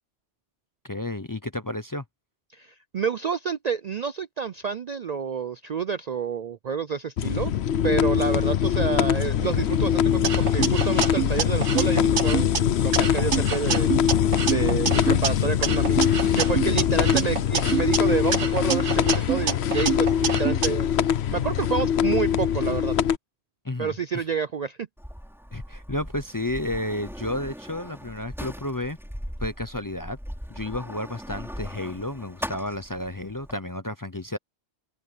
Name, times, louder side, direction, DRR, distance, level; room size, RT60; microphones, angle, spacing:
voice 1, 0.8-2.0 16.8-17.1 23.6-24.2 25.5-29.0 29.4-30.2 30.5-34.4, left 1 dB, 25° left, 0.6 m, -32 dB
voice 2, 2.5-7.5 7.8-13.9 14.4-16.1 16.4-23.0 23.8-24.9, right 6 dB, 50° right, 0.5 m, -29 dB
sound 1, 7.2-23.2, left 9 dB, 70° left, 1.0 m, -23 dB
sound 2, 10.2-12.6 12.9-15.3 15.6-18.0 18.3-20.7, right 7 dB, 80° right, 1.7 m, -27 dB
Sliding door, 25.0-33.5, equal, ahead, 5.9 m, -39 dB
open air
omnidirectional pair, 1.2 m